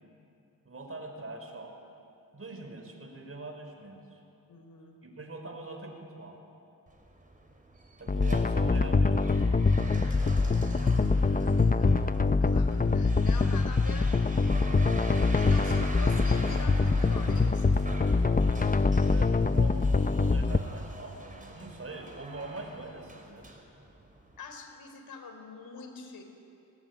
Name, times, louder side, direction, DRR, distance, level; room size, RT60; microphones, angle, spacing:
voice 1, 0.6-1.8 2.3-4.2 5.0-6.4 8.0-9.3 19.1-23.5, right 2 dB, 40° right, 4 dB, 5.3 m, -43 dB
voice 2, 4.5-5.0 10.7-11.0 11.7-14.2 15.2-17.8 24.4-26.2, left 4 dB, 85° left, 5 dB, 4.1 m, -45 dB
sound 1, 6.9-24.4, right 2 dB, 20° right, 5.0 m, -44 dB
sound 2, 8.1-20.6, left 3 dB, 25° left, 0.9 m, -24 dB
27.0 x 19.0 x 9.9 m, 2.7 s
cardioid pair, 70°, 35 cm